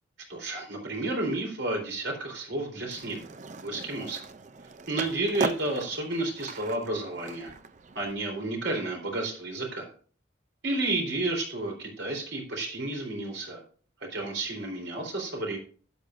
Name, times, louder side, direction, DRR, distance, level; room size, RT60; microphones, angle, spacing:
voice 1, 0.3-3.2 3.6-4.2 4.9-7.5 8.0-9.9 10.6-13.6 14.0-15.6, right 2 dB, 70° right, 1 dB, 3.9 m, -31 dB
Skateboard, 2.9-8.1, right 3 dB, 40° right, 0.5 m, -38 dB
12.5 x 10.5 x 2.6 m, 0.42 s
head